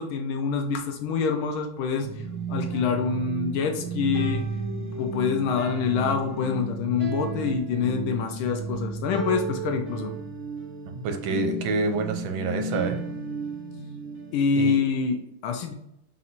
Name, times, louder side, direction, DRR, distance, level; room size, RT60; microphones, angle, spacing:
voice 1, 0.0-2.1 2.5-4.4 4.9-10.1 14.3-15.7, left 6 dB, 90° left, 4 dB, 1.5 m, -26 dB
sound 1, 2.0-15.0, right 4 dB, 50° right, 1.4 m, -33 dB
voice 2, 11.0-13.0 14.6-14.8, right 3 dB, 80° right, 5 dB, 1.5 m, -27 dB
4.2 x 4.1 x 2.5 m, 0.80 s
omnidirectional pair, 2.2 m